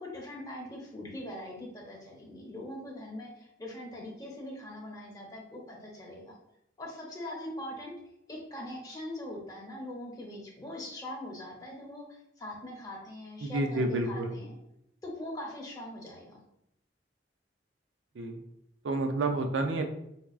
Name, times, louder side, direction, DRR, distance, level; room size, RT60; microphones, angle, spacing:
voice 1, 0.0-6.3 6.8-7.9 8.3-12.1 12.4-14.5 15.0-16.4, left 1 dB, 20° left, -2 dB, 0.8 m, -42 dB
voice 2, 13.4-14.3 18.1-18.4 18.8-19.9, right 2 dB, 75° right, 5 dB, 0.4 m, -29 dB
4.2 x 2.3 x 2.4 m, 0.80 s
head